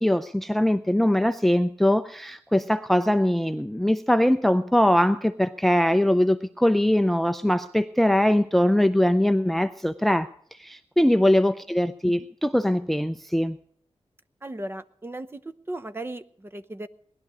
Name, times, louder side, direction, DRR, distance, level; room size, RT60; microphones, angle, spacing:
voice 1, 0.0-10.3 10.6-13.6, left 1 dB, ahead, 12 dB, 0.5 m, -22 dB
voice 2, 14.4-16.9, right 1 dB, 20° right, 9 dB, 0.8 m, -36 dB
19.5 x 12.0 x 4.9 m, 0.62 s
wide cardioid pair, 125°, 11 cm